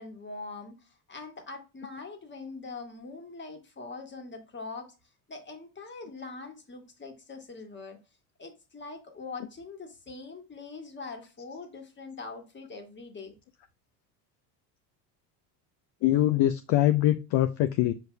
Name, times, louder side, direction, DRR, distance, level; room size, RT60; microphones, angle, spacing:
voice 1, 0.0-4.9 5.3-8.0 8.4-13.4, left 3 dB, 20° left, 1.4 m, -43 dB
voice 2, 16.0-17.9, left 13 dB, 55° left, 0.5 m, -23 dB
5.1 x 4.7 x 2.2 m
hypercardioid pair, 80°, 49 cm